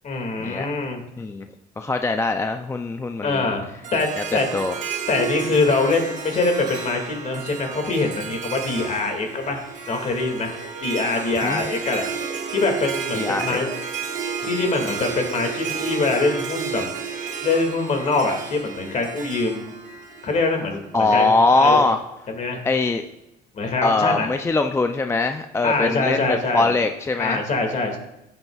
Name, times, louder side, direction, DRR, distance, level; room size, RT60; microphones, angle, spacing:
voice 1, 0.0-1.0 3.2-3.7 3.9-4.1 4.3-4.5 5.1-10.5 10.8-12.1 12.5-13.7 14.4-16.8 17.4-19.8 20.2-21.9 22.3-22.6 23.5-24.3 25.6-26.7 27.2-28.0, left 3 dB, 45° left, 3 dB, 2.2 m, -24 dB
voice 2, 1.8-3.5 4.2-4.3 4.5-4.7 11.4-11.6 13.1-13.6 20.9-22.0 22.6-23.0 23.8-27.4, left 3 dB, 15° left, 7 dB, 0.4 m, -21 dB
Harp, 3.8-21.1, right 6 dB, 45° right, 1.4 m, -32 dB
14.5 x 8.1 x 2.4 m, 0.89 s
cardioid pair, 110°, 17 cm